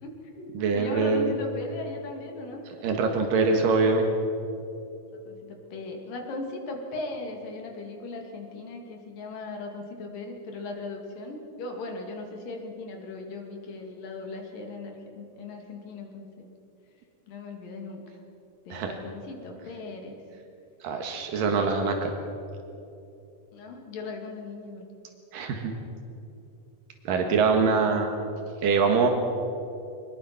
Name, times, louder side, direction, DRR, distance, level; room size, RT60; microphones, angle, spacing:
voice 1, 0.0-2.6 5.3-16.5 17.3-18.0 18.7-20.2 21.6-21.7 23.5-24.9 27.6-28.0, left 2 dB, 85° left, 2 dB, 4.2 m, -38 dB
voice 2, 0.6-1.3 2.8-4.1 18.7-18.9 20.8-22.0 25.3-25.7 27.1-28.1 28.6-29.1, right 4 dB, 85° right, 3 dB, 3.3 m, -23 dB
24.5 x 20.5 x 6.0 m, 2.8 s
omnidirectional pair, 3.8 m